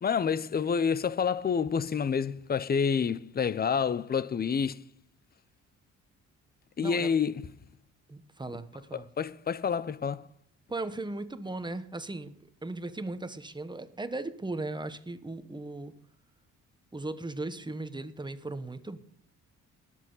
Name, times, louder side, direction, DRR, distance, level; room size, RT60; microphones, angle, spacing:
voice 1, 0.0-4.8 6.8-7.5 8.9-10.2, left 6 dB, 30° left, 0.7 m, -28 dB
voice 2, 6.8-7.1 8.1-9.1 10.7-12.4 12.6-15.9 16.9-19.0, right 2 dB, 15° right, 1.1 m, -37 dB
19.5 x 7.5 x 4.0 m
cardioid pair, 90°, 30 cm